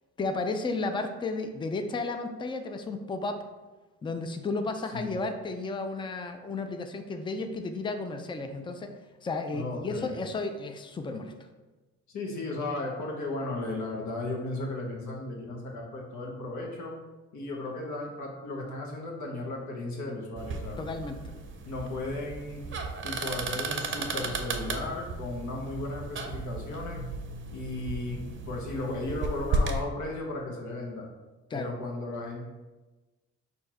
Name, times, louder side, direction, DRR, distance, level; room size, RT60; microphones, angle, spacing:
voice 1, 0.2-3.4 4.0-8.9 9.2-11.3 20.8-21.3 31.5-31.7, left 3 dB, 15° left, 7 dB, 0.4 m, -33 dB
voice 2, 9.5-10.1 12.1-16.9 17.3-20.8 21.7-22.6 23.0-27.0 27.5-28.2 28.5-31.1 31.5-32.4, left 2 dB, 70° left, -1 dB, 1.2 m, -35 dB
sound 1, 20.4-29.8, right 3 dB, 40° right, 0.6 m, -34 dB
4.4 x 2.7 x 4.3 m, 1.2 s
cardioid pair, 90°, 30 cm